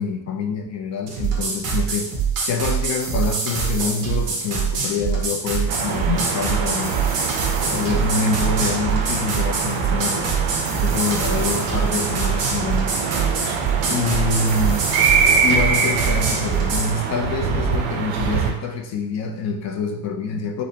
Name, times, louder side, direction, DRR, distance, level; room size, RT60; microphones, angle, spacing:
voice 1, 0.0-2.1 2.4-7.0 7.7-10.3 10.8-13.0 13.9-14.9 15.4-20.6, left 4 dB, 40° left, 2 dB, 0.5 m, -26 dB
sound 1, 1.1-16.9, right 6 dB, 45° right, 1.1 m, -24 dB
sound 2, 5.7-18.5, right 6 dB, 65° right, 0.7 m, -24 dB
5.0 x 2.1 x 2.8 m, 0.85 s
cardioid pair, 130°, 44 cm